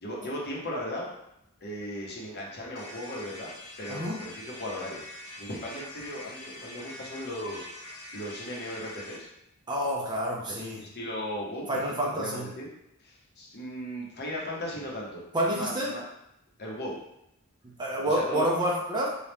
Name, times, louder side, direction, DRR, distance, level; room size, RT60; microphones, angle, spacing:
voice 1, 0.0-1.1 1.6-3.5 3.8-5.0 5.4-7.7 8.1-9.3 10.5-12.7 13.0-15.2 15.5-16.0 16.6-17.0 18.0-18.5, left 1 dB, 45° left, -3 dB, 0.9 m, -37 dB
sound 1, 2.7-9.2, left 1 dB, 70° left, 1.1 m, -44 dB
voice 2, 9.7-10.8 11.7-12.5 15.3-15.9 17.8-19.1, right 1 dB, 20° right, -2 dB, 0.5 m, -28 dB
4.1 x 2.4 x 3.4 m, 0.83 s
head